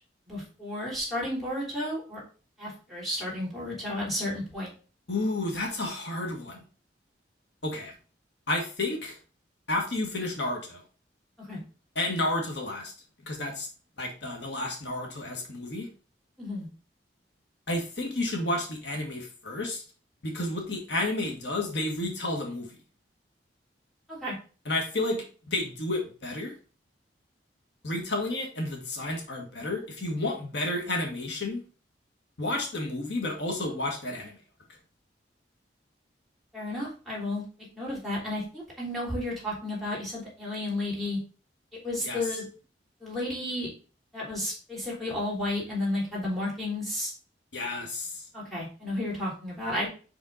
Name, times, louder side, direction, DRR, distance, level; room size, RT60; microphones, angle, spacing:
voice 1, 0.3-2.2 2.6-4.7 11.4-11.6 16.4-16.7 24.1-24.4 36.5-37.4 37.7-41.2 41.8-42.5 43.0-43.7 44.1-47.1 48.3-49.9, left 1 dB, ahead, -7 dB, 3.2 m, -32 dB
voice 2, 5.1-6.6 7.6-7.9 8.5-9.2 9.7-10.8 11.9-12.9 13.3-13.7 14.0-15.9 17.7-19.8 20.2-22.7 24.6-26.5 27.8-31.6 32.4-34.4 42.0-42.2 47.5-48.2, left 2 dB, 70° left, 1 dB, 1.6 m, -31 dB
5.7 x 5.2 x 3.9 m, 0.37 s
head